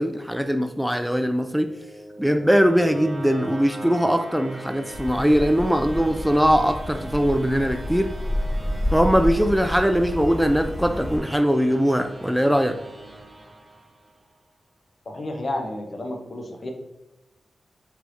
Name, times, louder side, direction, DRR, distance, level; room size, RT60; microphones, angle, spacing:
voice 1, 0.0-1.7 2.2-8.1 8.9-12.8, equal, ahead, 6 dB, 0.3 m, -21 dB
sound 1, 1.3-14.3, right 1 dB, 25° right, 0.9 m, -41 dB
sound 2, 4.9-11.2, left 1 dB, 35° left, 1.2 m, -30 dB
voice 2, 15.1-16.7, left 1 dB, 55° left, 3 dB, 0.7 m, -31 dB
4.4 x 3.4 x 2.6 m, 1.0 s
cardioid pair, 50°, 0 cm